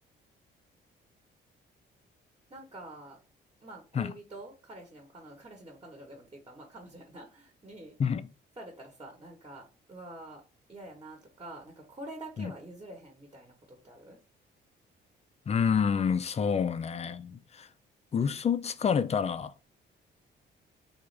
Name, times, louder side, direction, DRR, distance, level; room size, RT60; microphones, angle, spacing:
voice 1, 2.5-3.2 3.6-8.0 8.6-9.6 9.9-10.4 10.7-14.2, right 1 dB, 25° right, 1.0 m, -47 dB
voice 2, 8.0-8.3 12.4-12.5 15.5-17.7 18.1-19.5, left 6 dB, 35° left, 0.4 m, -28 dB
3.5 x 2.5 x 3.2 m
cardioid pair, 90°, 20 cm